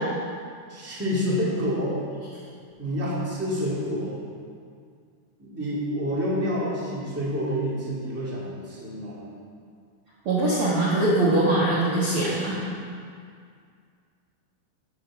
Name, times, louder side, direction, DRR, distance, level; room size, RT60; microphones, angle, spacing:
voice 1, 0.7-2.0 2.8-4.2 5.4-9.2, equal, 5° right, -8 dB, 1.1 m, -28 dB
voice 2, 10.2-12.5, right 2 dB, 85° right, -8 dB, 1.2 m, -22 dB
11.0 x 6.2 x 6.3 m, 2.2 s
omnidirectional pair, 5.0 m